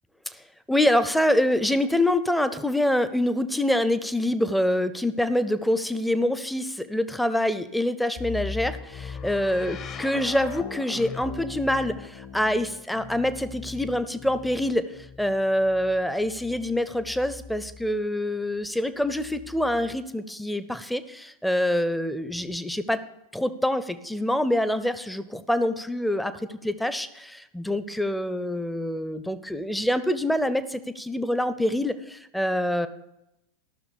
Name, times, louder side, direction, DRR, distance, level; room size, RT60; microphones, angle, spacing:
voice 1, 0.3-23.0 23.3-32.9, left 1 dB, ahead, 13 dB, 0.6 m, -26 dB
sound 1, 8.2-18.0 19.0-20.0, left 6 dB, 30° left, 0.9 m, -40 dB
13.5 x 6.4 x 6.7 m, 0.88 s
figure-of-eight pair, 90°, 0 cm